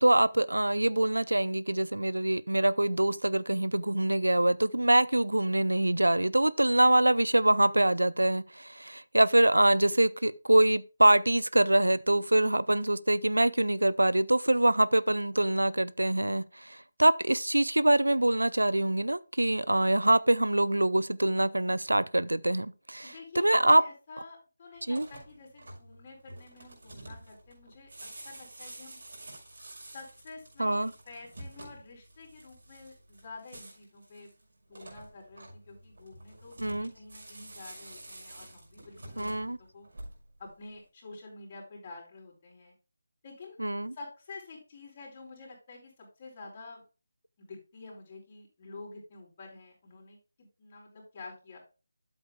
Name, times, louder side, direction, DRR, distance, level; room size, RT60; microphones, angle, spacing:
voice 1, 0.0-23.8 24.9-25.1 30.6-30.9 36.6-36.9 39.2-39.6 43.6-43.9, right 1 dB, 75° right, 0.5 m, -24 dB
voice 2, 23.0-29.0 29.9-34.3 34.7-39.9 40.4-42.7 43.2-43.6 43.9-46.8 47.4-51.6, left 3 dB, 30° left, 4.4 m, -49 dB
sound 1, 24.8-40.5, right 1 dB, 55° right, 5.6 m, -49 dB
13.0 x 7.9 x 2.3 m
figure-of-eight pair, 155°, 0 cm